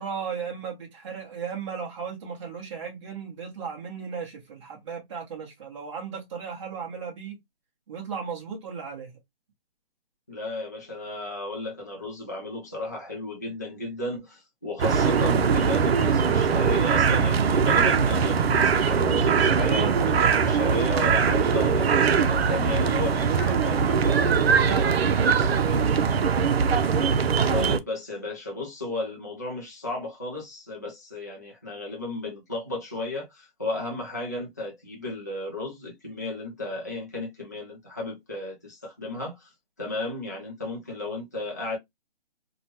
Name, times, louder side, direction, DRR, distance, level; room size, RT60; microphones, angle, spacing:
voice 1, 0.0-7.4 7.9-9.1 24.6-26.1, right 6 dB, 30° right, 0.9 m, -36 dB
voice 2, 10.3-24.2 27.5-39.5 39.8-41.8, left 2 dB, 20° left, 0.3 m, -34 dB
sound 1, 14.8-27.8, right 6 dB, 85° right, 0.6 m, -21 dB
2.9 x 2.2 x 2.7 m
hypercardioid pair, 165°, 30 cm